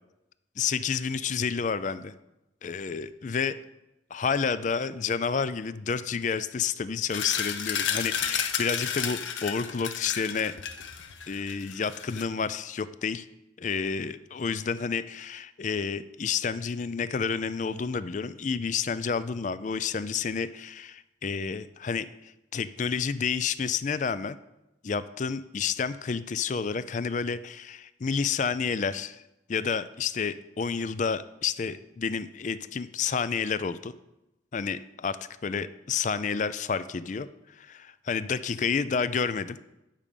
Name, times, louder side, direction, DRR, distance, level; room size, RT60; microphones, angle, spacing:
voice 1, 0.6-2.1 2.6-3.6 4.1-10.5 11.3-13.3 13.6-24.4 24.8-29.2 29.5-33.9 34.5-35.2 35.4-37.3 37.6-39.6, left 6 dB, 40° left, 15 dB, 0.4 m, -30 dB
sound 1, 7.1-12.2, left 8 dB, 85° left, 0.8 m, -32 dB
10.5 x 5.3 x 6.8 m, 0.93 s
head